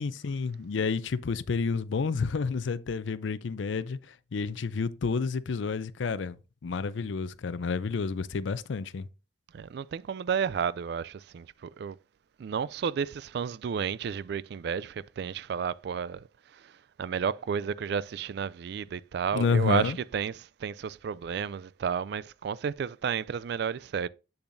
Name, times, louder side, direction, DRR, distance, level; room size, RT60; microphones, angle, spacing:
voice 1, 0.0-6.4 6.6-9.1 19.3-20.0, left 5 dB, 75° left, 0.5 m, -30 dB
voice 2, 9.5-12.0 12.4-16.3 16.5-16.7 17.0-24.1, right 7 dB, 60° right, 0.3 m, -32 dB
7.9 x 6.9 x 2.6 m
head